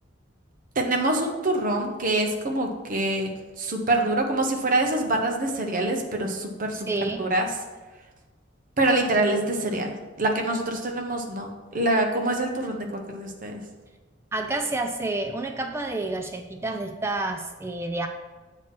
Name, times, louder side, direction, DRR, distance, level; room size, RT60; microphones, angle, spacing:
voice 1, 0.8-3.3 3.6-6.9 7.2-7.5 8.8-13.5, right 2 dB, 45° right, 2 dB, 0.9 m, -25 dB
voice 2, 6.9-7.3 14.3-18.1, right 2 dB, 15° right, 5 dB, 0.3 m, -29 dB
7.7 x 2.9 x 5.9 m, 1.3 s
head